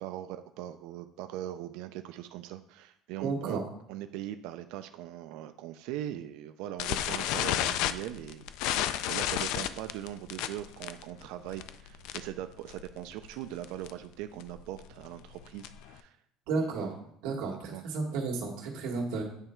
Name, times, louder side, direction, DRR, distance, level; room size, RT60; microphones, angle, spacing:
voice 1, 0.0-3.6 3.9-8.4 9.0-16.2 16.5-16.7 17.3-17.4 17.7-17.8, right 12 dB, 65° right, 9 dB, 0.4 m, -40 dB
voice 2, 3.2-3.6 16.5-17.0 17.2-19.2, right 4 dB, 90° right, -1 dB, 1.6 m, -32 dB
sound 1, 6.8-12.4 12.7-13.0 13.2-13.3 13.6-13.9 14.4-15.9, left 12 dB, 65° left, 0.3 m, -32 dB
8.9 x 3.3 x 4.4 m, 0.69 s
cardioid pair, 180°, 0 cm